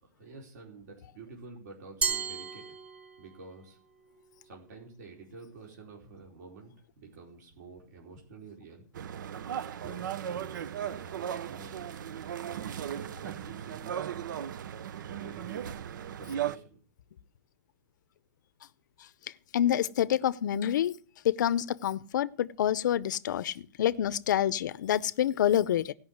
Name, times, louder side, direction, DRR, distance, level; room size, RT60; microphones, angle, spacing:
voice 1, 0.0-2.6 3.2-3.8 4.4-8.9 9.8-12.2 12.5-14.0 15.1-15.6 16.2-16.8, right 4 dB, 65° right, 4.3 m, -49 dB
Glass, 2.0-3.5, right 5 dB, 10° right, 0.6 m, -33 dB
sound 1, 9.0-16.6, right 9 dB, 85° right, 0.7 m, -37 dB
voice 2, 19.5-21.0 21.2-25.9, left 10 dB, 75° left, 0.6 m, -27 dB
17.0 x 5.9 x 7.9 m
supercardioid pair, 170°, 10 cm